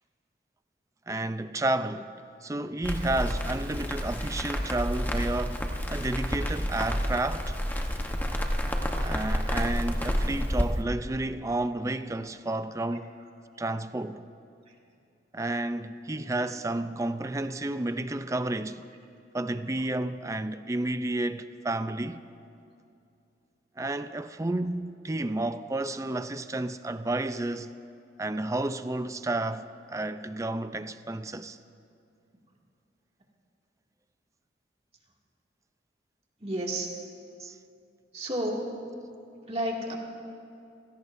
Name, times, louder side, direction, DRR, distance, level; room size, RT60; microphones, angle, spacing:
voice 1, 1.1-2.1 2.4-5.6 5.9-7.6 9.0-13.1 13.6-14.3 15.3-18.9 19.3-22.3 23.8-27.7 28.2-31.6 37.4-37.6, right 2 dB, 15° right, 0.4 m, -31 dB
Crackle, 2.8-10.6, equal, 10° left, 1.0 m, -30 dB
voice 2, 36.4-36.9 38.1-38.8 39.5-40.0, right 1 dB, 35° right, 2.2 m, -31 dB
29.5 x 17.0 x 2.6 m
head